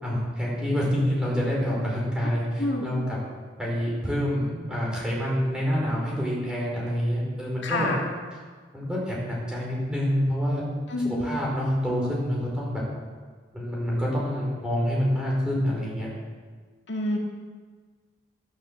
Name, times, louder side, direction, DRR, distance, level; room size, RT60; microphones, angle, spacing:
voice 1, 0.0-3.2 3.6-7.9 8.7-10.6 11.0-12.8 13.5-16.1, equal, 5° right, -5 dB, 5.0 m, -27 dB
voice 2, 7.6-8.0 10.9-11.2 16.9-17.2, left 2 dB, 70° left, 0 dB, 2.1 m, -27 dB
13.0 x 11.0 x 7.6 m, 1.5 s
head